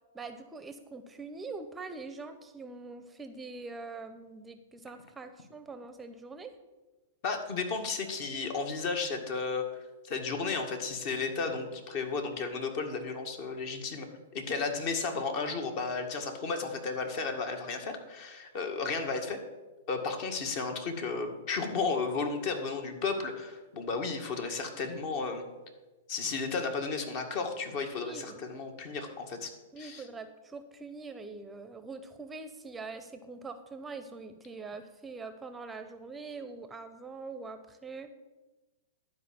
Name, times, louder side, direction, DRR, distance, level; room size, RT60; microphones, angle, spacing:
voice 1, 0.1-6.5 28.0-28.4 29.7-38.1, right 4 dB, 15° right, 9 dB, 0.7 m, -43 dB
voice 2, 7.2-9.7 10.0-19.4 19.9-25.5 26.1-30.1, left 4 dB, 50° left, 5 dB, 1.8 m, -33 dB
12.0 x 4.8 x 7.4 m, 1.2 s
hypercardioid pair, 120°, 0 cm